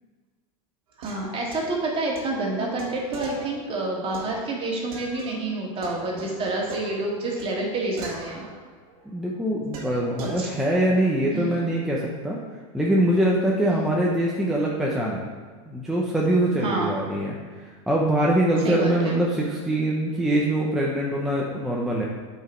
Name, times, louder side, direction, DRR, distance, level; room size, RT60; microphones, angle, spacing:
sound 1, 0.9-5.5 5.8-9.1 9.7-10.5, right 3 dB, 90° right, 1.6 m, -41 dB
voice 1, 1.0-8.5 10.4-10.5 11.3-11.5 13.7-13.8 16.6-16.9 18.6-19.2, right 2 dB, 30° right, -1 dB, 2.0 m, -28 dB
voice 2, 9.0-12.4 12.7-15.2 15.7-22.1, right 1 dB, ahead, -4 dB, 0.9 m, -23 dB
8.1 x 5.0 x 4.6 m, 1.5 s
supercardioid pair, 130°, 18 cm